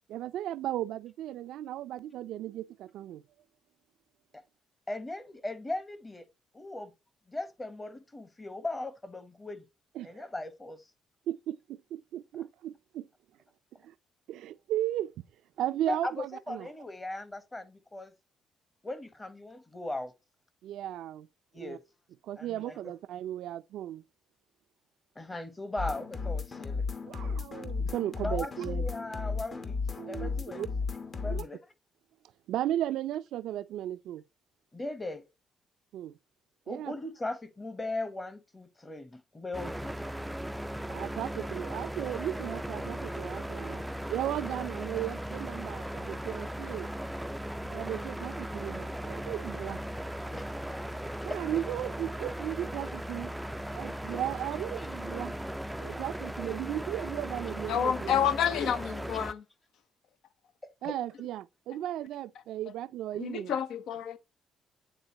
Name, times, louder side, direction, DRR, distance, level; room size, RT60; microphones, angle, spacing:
voice 1, 0.1-3.2 10.0-10.3 11.3-13.1 13.8-13.9 14.3-15.1 15.6-16.7 20.6-21.3 21.6-21.8 22.2-24.0 27.1-28.9 30.0-30.7 31.3-31.4 32.5-34.2 35.9-36.1 36.7-36.9 40.9-43.8 44.1-46.9 47.6-49.8 51.2-53.3 53.7-55.3 55.8-58.2 60.8-63.6, right 12 dB, 85° right, 0.4 m, -35 dB
voice 2, 4.9-6.2 6.5-6.9 7.3-9.6 10.0-10.8 15.9-18.1 18.8-20.1 21.5-21.8 22.4-22.9 25.2-26.8 28.2-29.8 30.1-30.7 31.1-31.6 34.7-35.2 36.7-39.9 50.3-51.4 54.8-54.9 58.5-58.7 60.6-61.0, left 2 dB, 20° left, 1.1 m, -38 dB
sound 1, 25.8-31.4, left 4 dB, 40° left, 1.0 m, -34 dB
sound 2, 39.5-59.3, equal, 5° right, 0.3 m, -37 dB
voice 3, 57.7-59.4 63.2-64.2, left 9 dB, 80° left, 0.7 m, -29 dB
9.2 x 3.7 x 2.9 m
cardioid pair, 90°, 0 cm